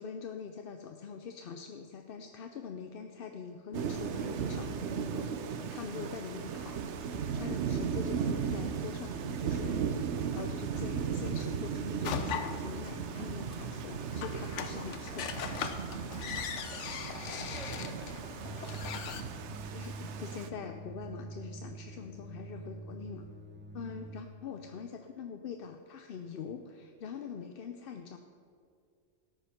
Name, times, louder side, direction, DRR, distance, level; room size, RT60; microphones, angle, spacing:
voice 1, 0.0-6.8 7.3-9.8 10.3-15.3 19.7-23.3 23.7-28.2, left 6 dB, 60° left, 6 dB, 0.7 m, -43 dB
Thunder / Rain, 3.7-20.5, right 7 dB, 75° right, 1.0 m, -36 dB
sound 1, 12.0-19.2, left 7 dB, 80° left, 1.1 m, -40 dB
voice 2, 16.1-18.6, right 1 dB, 90° right, -1 dB, 2.3 m, -52 dB
sound 2, 18.4-24.2, right 3 dB, 15° right, 0.5 m, -45 dB
13.0 x 8.0 x 5.7 m, 2.3 s
omnidirectional pair, 1.2 m